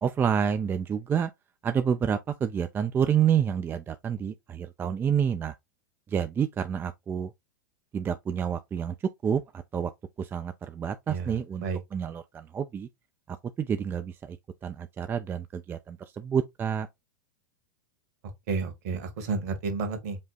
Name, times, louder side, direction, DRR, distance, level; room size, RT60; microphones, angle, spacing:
voice 1, 0.0-1.3 1.6-5.5 6.1-7.3 7.9-8.9 9.2-9.4 9.7-9.9 10.2-11.6 11.9-12.9 13.3-14.4 14.6-16.9, right 8 dB, 20° right, 0.5 m, -28 dB
voice 2, 11.1-11.8 18.5-20.2, right 4 dB, 60° right, 1.9 m, -31 dB
5.3 x 2.3 x 4.0 m
hypercardioid pair, 95°, 10 cm